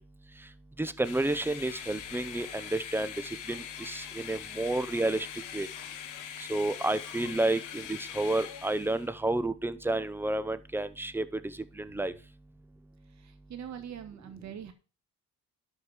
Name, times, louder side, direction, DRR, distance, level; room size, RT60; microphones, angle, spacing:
voice 1, 0.8-3.1 3.5-5.3 5.5-5.7 6.5-11.2 11.8-12.1, right 2 dB, 5° right, 14 dB, 0.8 m, -30 dB
sound 1, 1.0-9.1, left 9 dB, 90° left, 1.2 m, -42 dB
voice 2, 13.2-14.7, right 9 dB, 65° right, 8 dB, 1.8 m, -43 dB
12.0 x 4.8 x 4.9 m, 0.35 s
cardioid pair, 90°, 30 cm